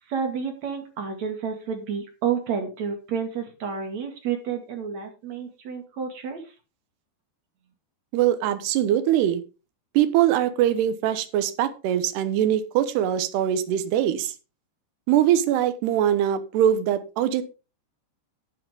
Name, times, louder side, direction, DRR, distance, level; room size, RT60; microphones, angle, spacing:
voice 1, 0.1-6.5, right 7 dB, 45° right, 5 dB, 3.0 m, -30 dB
voice 2, 8.1-9.4 9.9-14.3 15.1-17.4, right 11 dB, 75° right, 11 dB, 3.1 m, -22 dB
12.5 x 8.5 x 3.7 m, 0.31 s
omnidirectional pair, 4.9 m